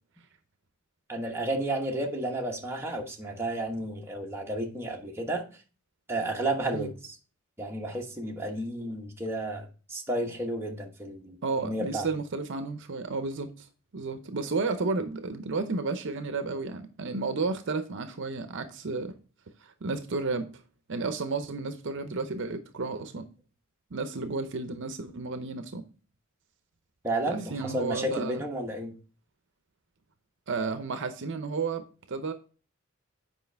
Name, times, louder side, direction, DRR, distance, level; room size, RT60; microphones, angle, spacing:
voice 1, 1.1-5.4 6.1-7.1 7.6-11.4 11.6-12.1 27.0-28.9, right 1 dB, 10° right, 1.2 m, -32 dB
voice 2, 11.4-13.7 13.9-19.1 19.6-20.5 20.9-23.3 23.9-25.9 27.3-28.4 30.5-32.3, right 3 dB, 60° right, 0.7 m, -32 dB
8.1 x 5.0 x 3.4 m
head